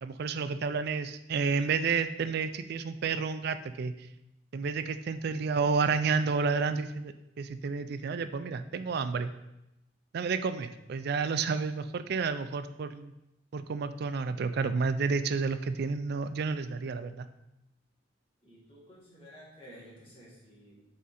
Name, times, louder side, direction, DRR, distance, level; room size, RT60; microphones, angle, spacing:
voice 1, 0.0-3.9 4.5-9.3 10.1-13.1 13.5-17.3, right 5 dB, 55° right, 11 dB, 0.4 m, -30 dB
voice 2, 18.4-20.9, equal, 30° left, -5 dB, 1.9 m, -52 dB
7.4 x 3.6 x 4.2 m, 0.90 s
head